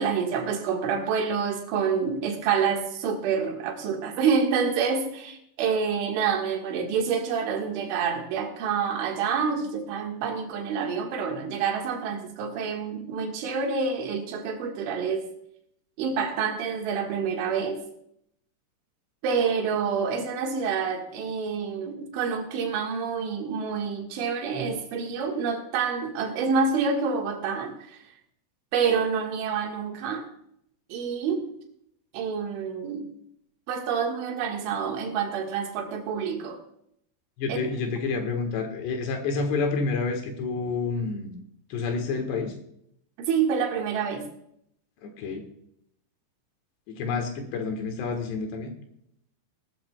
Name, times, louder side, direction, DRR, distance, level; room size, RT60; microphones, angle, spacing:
voice 1, 0.0-15.3 16.0-17.8 19.2-28.0 28.7-30.3 30.9-31.5 32.1-33.1 33.7-36.6 37.5-37.6 43.2-44.3, right 6 dB, 75° right, 2 dB, 3.9 m, -27 dB
voice 2, 37.4-41.3 41.7-42.5 45.0-45.4 46.9-48.7, left 4 dB, 70° left, 5 dB, 3.2 m, -29 dB
19.0 x 13.0 x 2.3 m, 0.72 s
omnidirectional pair, 5.7 m